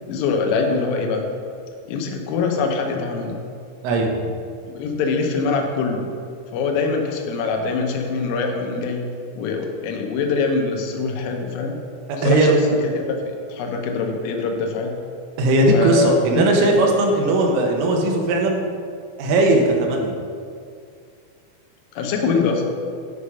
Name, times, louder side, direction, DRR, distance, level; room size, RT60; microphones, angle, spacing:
voice 1, 0.1-1.3 1.9-3.5 4.7-6.1 6.5-9.1 9.4-11.8 12.2-12.6 12.8-14.9 15.7-16.1 16.6-16.8 22.0-22.6, left 4 dB, 85° left, 3 dB, 3.6 m, -23 dB
voice 2, 12.1-12.6 15.4-18.6 19.2-20.1, right 2 dB, 85° right, 1 dB, 3.5 m, -18 dB
10.5 x 4.9 x 5.5 m, 2.3 s
omnidirectional pair, 5.7 m